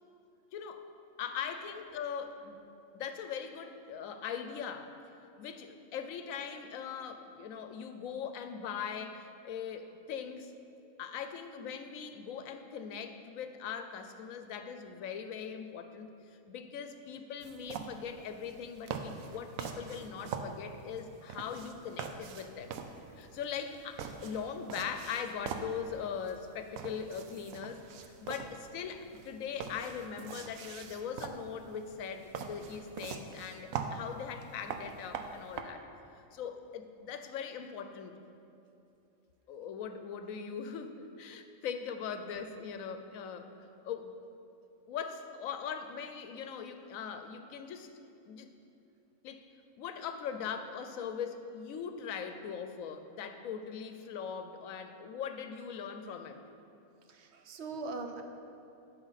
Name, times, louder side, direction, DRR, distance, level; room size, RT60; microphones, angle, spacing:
voice 1, 0.5-0.8 1.2-2.6 2.9-4.9 5.4-10.5 11.0-16.1 16.5-22.8 23.2-27.9 28.2-35.9 36.3-38.2 39.5-43.5 43.8-44.1 44.9-47.9 48.2-48.5 49.2-49.5 49.8-56.4, left 7 dB, 80° left, 8 dB, 1.0 m, -40 dB
sound 1, 17.4-35.6, right 6 dB, 80° right, 1.0 m, -44 dB
voice 2, 57.1-58.2, right 3 dB, 60° right, 5 dB, 0.9 m, -40 dB
11.5 x 6.0 x 4.0 m, 2.7 s
omnidirectional pair, 1.4 m